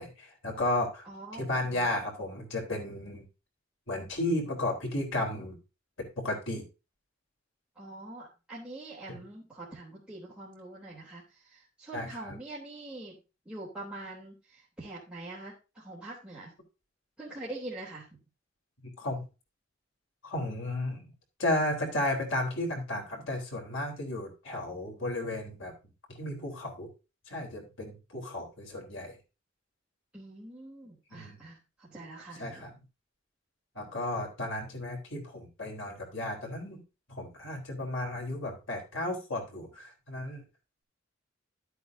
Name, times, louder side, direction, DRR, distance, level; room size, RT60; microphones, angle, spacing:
voice 1, 0.0-1.1 1.3-3.3 3.9-5.6 6.0-6.7 9.1-9.2 11.9-12.4 18.8-19.3 20.2-21.1 21.4-25.7 26.1-26.9 27.3-29.2 31.1-31.5 32.4-32.7 33.7-36.8 37.1-40.4, left 1 dB, 80° left, 1 dB, 3.9 m, -34 dB
voice 2, 1.0-1.9 7.7-13.2 13.4-16.5 17.2-18.1 30.1-32.7, right 2 dB, 5° right, -8 dB, 3.3 m, -44 dB
13.0 x 8.2 x 2.7 m, 0.29 s
head